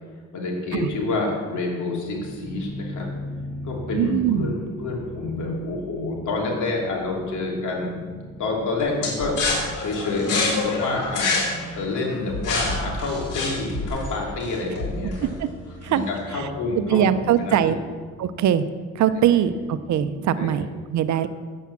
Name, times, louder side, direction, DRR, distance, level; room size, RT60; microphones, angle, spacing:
voice 1, 0.3-3.1 3.6-8.0 8.4-11.4 11.8-15.3 15.9-17.8 19.1-19.2 20.4-20.5, left 3 dB, 75° left, -2 dB, 3.1 m, -28 dB
sound 1, 2.2-20.7, equal, 30° right, 2.4 m, -41 dB
voice 2, 3.9-4.5 15.2-15.5 15.8-16.1 16.3-16.5 16.9-17.8 18.2-18.6 18.9-21.3, right 10 dB, 70° right, 12 dB, 0.7 m, -22 dB
sound 2, 9.0-13.9, left 3 dB, 90° left, 3.4 m, -26 dB
sound 3, 9.2-16.2, left 1 dB, 55° left, 3.6 m, -36 dB
8.6 x 8.2 x 7.2 m, 1.5 s
cardioid pair, 90°, 30 cm